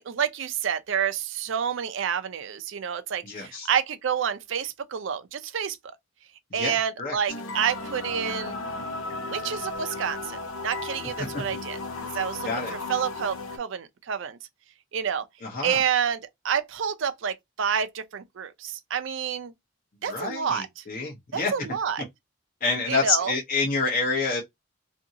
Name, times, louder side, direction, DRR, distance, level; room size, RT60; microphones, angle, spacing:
voice 1, 0.0-5.8 6.5-8.6 9.2-11.8 12.1-14.4 14.9-15.2 15.6-19.5 20.0-20.8 21.3-22.0 22.9-23.3, right 7 dB, 60° right, 0.4 m, -29 dB
voice 2, 3.2-3.7 6.5-7.2 11.2-11.4 12.4-12.7 15.4-15.8 20.1-21.5 22.6-24.4, left 4 dB, 40° left, 0.7 m, -28 dB
sound 1, 7.3-13.6, left 2 dB, 75° left, 0.6 m, -35 dB
2.8 x 2.6 x 2.7 m
head